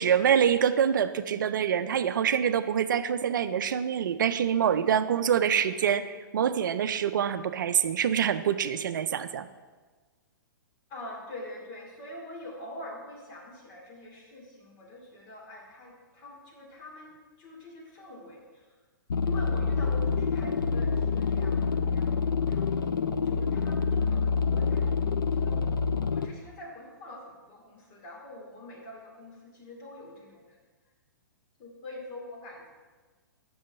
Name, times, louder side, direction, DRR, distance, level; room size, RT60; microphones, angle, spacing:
voice 1, 0.0-9.5, right 8 dB, 70° right, 12 dB, 0.5 m, -25 dB
voice 2, 10.9-18.7 19.2-22.9 23.2-30.6 31.6-32.7, left 1 dB, 35° left, -1 dB, 2.5 m, -45 dB
sound 1, 19.1-26.3, left 5 dB, 85° left, 0.5 m, -27 dB
6.4 x 6.2 x 5.8 m, 1.3 s
hypercardioid pair, 125°, 11 cm